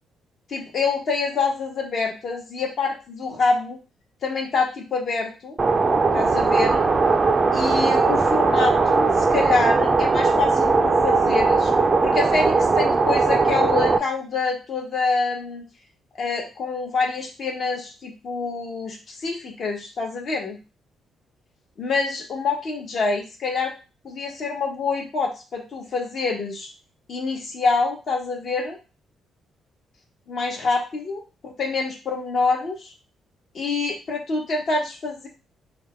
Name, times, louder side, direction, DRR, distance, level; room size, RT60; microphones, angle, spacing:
voice 1, 0.5-3.8 4.2-5.6 6.1-6.8 7.5-11.7 12.0-15.6 16.2-20.6 21.8-23.7 24.0-26.7 27.1-28.8 30.3-32.9 33.5-35.3, left 4 dB, 55° left, 1 dB, 1.0 m, -26 dB
sound 1, 5.6-14.0, right 4 dB, 30° right, 0.3 m, -19 dB
3.4 x 2.1 x 3.0 m, 0.31 s
cardioid pair, 90°, 0 cm